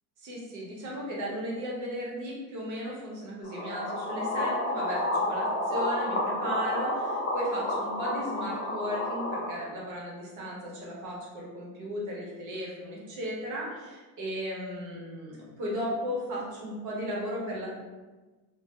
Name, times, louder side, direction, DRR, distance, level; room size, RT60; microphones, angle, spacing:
voice 1, 0.2-17.8, equal, 50° right, -4 dB, 0.9 m, -35 dB
sound 1, 3.4-9.5, left 1 dB, 35° left, 0.6 m, -30 dB
2.8 x 2.0 x 3.5 m, 1.2 s
cardioid pair, 180°, 38 cm